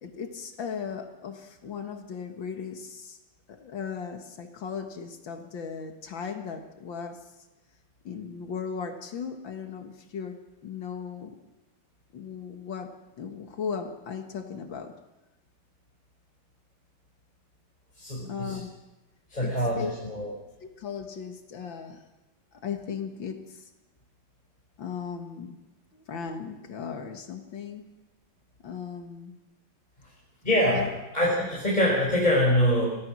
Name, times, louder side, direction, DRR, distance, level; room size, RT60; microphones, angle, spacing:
voice 1, 0.0-3.2 3.5-7.5 8.0-10.4 10.6-11.4 12.1-14.9 18.3-18.7 19.4-20.0 20.6-22.0 22.5-23.7 24.8-25.6 25.9-27.8 28.6-29.3 30.7-30.9, left 6 dB, 85° left, 5 dB, 2.4 m, -37 dB
voice 2, 18.0-18.6 19.3-20.3 30.4-32.9, equal, 20° left, -3 dB, 4.9 m, -24 dB
24.0 x 17.0 x 6.2 m, 1.0 s
omnidirectional pair, 2.0 m